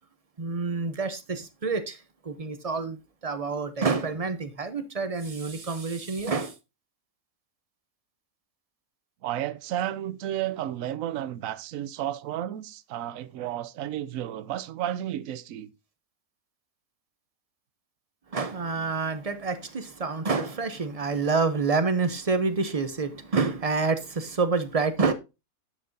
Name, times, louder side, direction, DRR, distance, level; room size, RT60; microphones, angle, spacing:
voice 1, 0.4-2.0 2.2-3.0 3.2-6.5 18.3-25.1, right 4 dB, 35° right, 0.6 m, -27 dB
voice 2, 9.2-15.7, right 12 dB, 70° right, 1.0 m, -32 dB
10.5 x 7.4 x 2.6 m
omnidirectional pair, 1.5 m